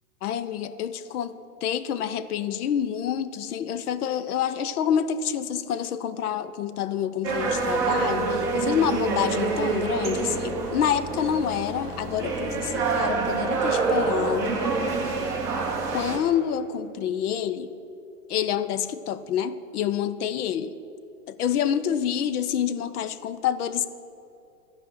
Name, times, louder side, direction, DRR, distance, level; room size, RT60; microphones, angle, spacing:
voice 1, 0.2-1.4 1.6-14.6 15.9-17.7 18.3-20.7 21.3-23.9, left 9 dB, 70° left, 13 dB, 0.7 m, -27 dB
Los Angeles Union Station, 7.2-16.2, right 4 dB, 5° right, 0.5 m, -26 dB
12.0 x 4.9 x 7.5 m, 2.7 s
hypercardioid pair, 160°, 47 cm